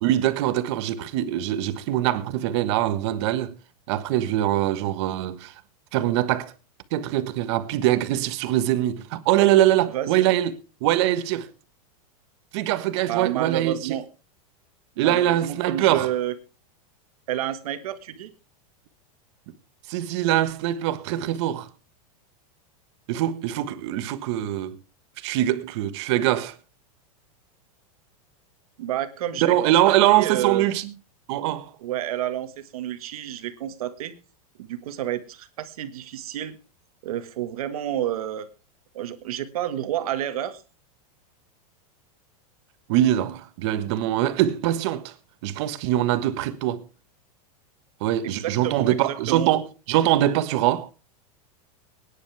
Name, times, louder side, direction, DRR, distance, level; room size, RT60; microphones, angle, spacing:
voice 1, 0.0-3.5 3.9-5.5 5.9-6.5 6.9-10.5 10.8-11.5 12.5-14.0 15.0-16.1 19.9-21.7 23.1-24.8 25.2-26.5 29.4-30.9 31.3-31.7 42.9-45.1 45.4-46.8 48.0-50.9, right 13 dB, 50° right, 1.4 m, -23 dB
voice 2, 9.9-10.3 13.0-14.1 15.0-16.3 17.3-18.3 28.8-30.7 31.8-34.1 34.6-36.6 37.0-38.5 38.9-40.6 48.2-49.5, right 11 dB, 75° right, 1.7 m, -30 dB
23.0 x 10.0 x 3.4 m
supercardioid pair, 165°, 19 cm